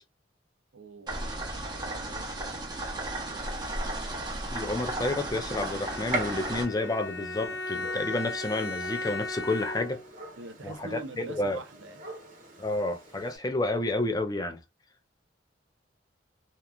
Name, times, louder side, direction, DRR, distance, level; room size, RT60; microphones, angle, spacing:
voice 1, 0.7-1.2 1.5-3.7 10.4-12.0, right 3 dB, 70° right, 0.6 m, -45 dB
sound 1, 1.1-6.6, right 1 dB, 20° right, 0.7 m, -34 dB
Gunshot gunfire, 3.4-13.4, right 2 dB, 45° right, 1.0 m, -42 dB
voice 2, 4.5-10.0 10.6-11.6 12.6-14.6, left 2 dB, 20° left, 0.4 m, -30 dB
Bowed string instrument, 5.7-10.2, left 2 dB, 85° left, 0.7 m, -36 dB
2.9 x 2.3 x 2.3 m
head